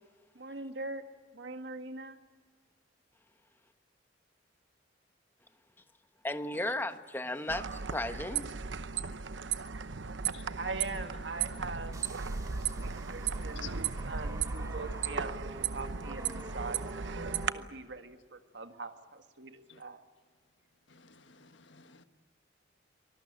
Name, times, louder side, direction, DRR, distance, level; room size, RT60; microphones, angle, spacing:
voice 1, 0.3-1.0 1.3-2.2 10.6-17.1 17.5-20.0, right 3 dB, 75° right, 1.9 m, -42 dB
voice 2, 6.2-8.5, left 1 dB, 10° left, 1.2 m, -35 dB
sound 1, 7.5-17.5, right 6 dB, 90° right, 0.9 m, -36 dB
sound 2, 11.9-17.6, right 1 dB, 20° right, 1.9 m, -48 dB
voice 3, 20.9-22.0, left 9 dB, 85° left, 1.5 m, -50 dB
24.5 x 20.5 x 8.9 m
head